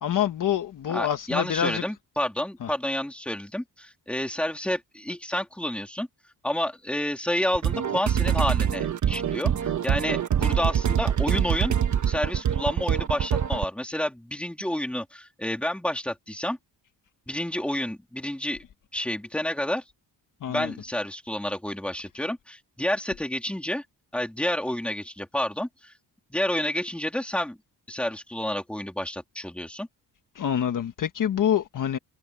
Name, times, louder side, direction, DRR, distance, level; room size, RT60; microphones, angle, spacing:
voice 1, 0.0-1.8 2.6-2.7 20.4-20.7 30.3-32.0, left 9 dB, 50° left, 1.4 m, -26 dB
voice 2, 0.9-6.1 6.4-11.7 12.0-16.6 17.3-18.6 18.9-19.8 20.5-23.8 24.1-25.9 26.3-27.6 27.9-29.9, left 1 dB, 5° left, 3.1 m, -29 dB
sound 1, 7.5-13.6, right 8 dB, 45° right, 1.3 m, -24 dB
cardioid pair, 170°, 41 cm